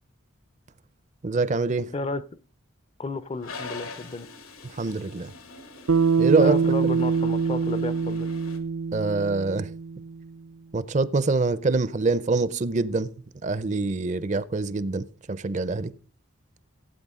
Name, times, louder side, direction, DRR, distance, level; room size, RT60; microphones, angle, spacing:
voice 1, 1.2-1.9 4.7-5.3 6.2-6.6 8.9-9.7 10.7-13.1 13.4-15.9, right 3 dB, 35° right, 0.5 m, -25 dB
voice 2, 1.9-2.2 3.0-4.3 6.4-8.3, left 3 dB, 30° left, 0.5 m, -32 dB
Toilet flush, 3.4-8.6, left 3 dB, 85° left, 1.8 m, -43 dB
Bass guitar, 5.9-10.3, right 5 dB, 80° right, 0.5 m, -24 dB
16.0 x 8.7 x 3.6 m
head